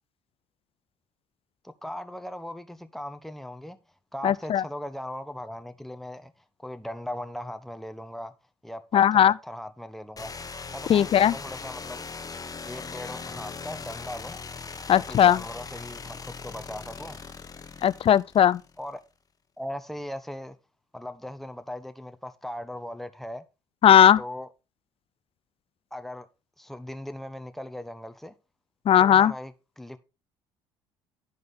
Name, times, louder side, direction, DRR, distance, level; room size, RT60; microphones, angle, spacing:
voice 1, 1.6-3.8 4.1-6.3 6.6-8.3 8.6-10.4 10.7-12.1 12.6-14.4 14.9-17.2 18.8-19.0 19.6-20.6 20.9-23.4 24.2-24.5 25.9-26.3 26.6-28.3 29.0-30.0, left 1 dB, ahead, 1.0 m, -38 dB
voice 2, 4.2-4.6 8.9-9.3 10.9-11.3 14.9-15.4 17.8-18.6 23.8-24.2 28.9-29.3, left 10 dB, 40° left, 0.4 m, -18 dB
sound 1, 10.2-18.9, left 5 dB, 25° left, 0.9 m, -40 dB
11.5 x 5.1 x 4.0 m
supercardioid pair, 70°, 14 cm